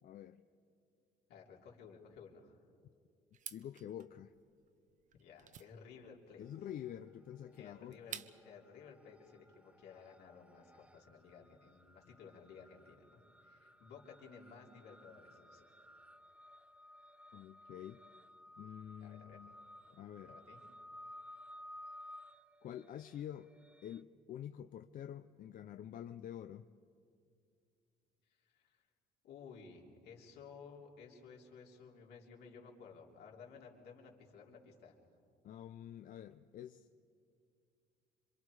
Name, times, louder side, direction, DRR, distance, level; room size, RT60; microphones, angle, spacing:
voice 1, 0.0-0.4 3.5-4.3 6.4-8.2 17.3-18.0 18.6-19.5 19.9-20.4 22.6-23.5 23.8-26.7 35.4-36.9, left 10 dB, 55° left, 9 dB, 0.6 m, -48 dB
voice 2, 1.3-2.6 5.1-6.4 7.6-15.7 19.0-19.4 20.2-20.6 28.4-28.8 29.2-34.9, left 5 dB, 75° left, -1 dB, 3.4 m, -56 dB
sound 1, 3.3-8.6, right 9 dB, 50° right, 0.8 m, -52 dB
sound 2, 6.5-7.1 7.4-24.0, left 1 dB, 5° right, 0.7 m, -57 dB
27.0 x 25.0 x 4.8 m, 2.3 s
cardioid pair, 110°, 17 cm